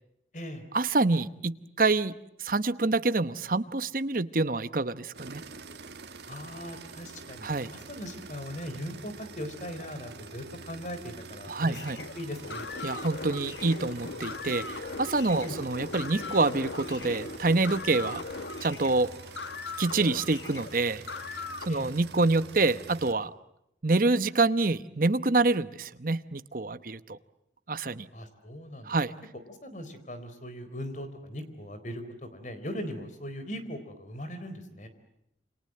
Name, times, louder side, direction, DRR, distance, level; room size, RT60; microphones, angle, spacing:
voice 1, 0.7-2.1 2.4-5.4 7.4-7.7 11.5-12.0 12.8-18.2 18.6-19.1 19.8-21.0 21.7-23.3 23.8-27.2 27.7-28.1 28.8-29.1, right 3 dB, 50° right, 13 dB, 1.0 m, -26 dB
sound 1, 5.1-23.1, right 4 dB, 70° right, 1.8 m, -47 dB
voice 2, 6.3-11.8 12.1-12.7 15.4-15.6 21.7-21.9 28.1-29.0 29.5-34.9, equal, 45° left, 10 dB, 4.0 m, -39 dB
sound 2, 11.7-21.7, left 3 dB, 80° left, 1.6 m, -39 dB
28.5 x 26.5 x 7.7 m, 0.82 s
head